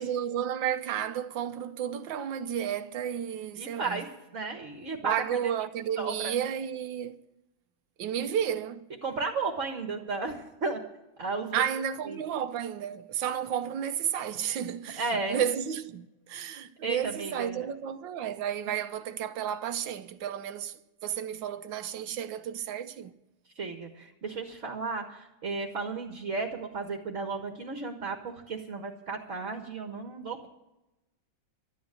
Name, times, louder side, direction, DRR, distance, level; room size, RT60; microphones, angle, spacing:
voice 1, 0.0-4.1 5.0-7.2 8.0-8.9 11.5-23.1, right 9 dB, 80° right, 1.6 m, -32 dB
voice 2, 3.6-4.1 4.3-5.1 6.0-6.3 9.0-10.8 11.2-11.6 12.1-12.2 15.0-15.4 16.8-17.6 23.5-30.5, right 4 dB, 45° right, 1.7 m, -34 dB
12.5 x 9.5 x 9.4 m
omnidirectional pair, 2.0 m